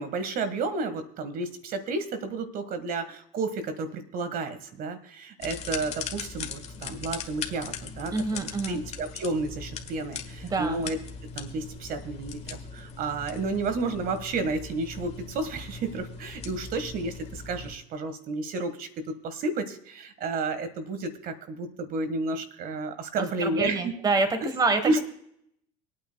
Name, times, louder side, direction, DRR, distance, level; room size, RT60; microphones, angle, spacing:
voice 1, 0.0-8.4 8.7-11.0 11.3-23.9 24.4-24.5 24.8-25.0, right 3 dB, 50° right, 10 dB, 1.5 m, -31 dB
sound 1, 5.4-17.8, left 5 dB, 35° left, 1.5 m, -40 dB
voice 2, 8.1-8.8 10.5-10.8 23.2-25.0, right 3 dB, 20° right, 9 dB, 1.3 m, -27 dB
25.5 x 8.9 x 2.3 m, 0.72 s
supercardioid pair, 105°, 19 cm